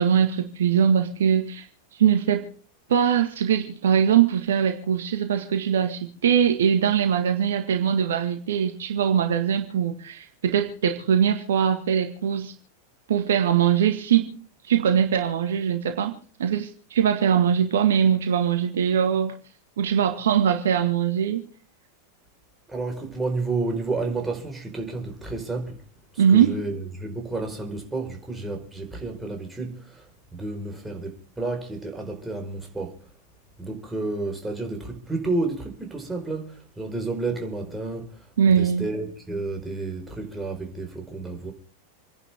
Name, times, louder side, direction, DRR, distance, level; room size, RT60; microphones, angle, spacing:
voice 1, 0.0-1.7 1.9-2.5 2.9-12.5 13.1-14.4 14.6-19.4 19.8-21.4 26.2-26.6 38.4-38.8, right 8 dB, 60° right, 1.8 m, -22 dB
voice 2, 22.7-25.8 26.1-33.1 33.6-41.5, right 3 dB, 10° right, 4.7 m, -31 dB
28.0 x 11.0 x 3.6 m
figure-of-eight pair, 90°, 0 cm